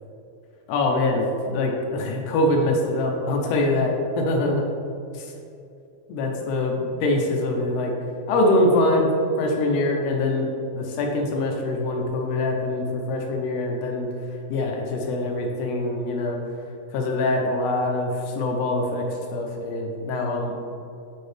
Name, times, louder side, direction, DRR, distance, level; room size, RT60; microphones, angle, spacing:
voice 1, 0.7-4.6 5.1-5.3 6.1-7.9 8.3-9.1 9.4-10.5 10.7-14.1 14.5-16.4 16.9-20.6, left 2 dB, 85° left, 1 dB, 1.4 m, -24 dB
6.5 x 4.4 x 3.3 m, 2.6 s
omnidirectional pair, 3.6 m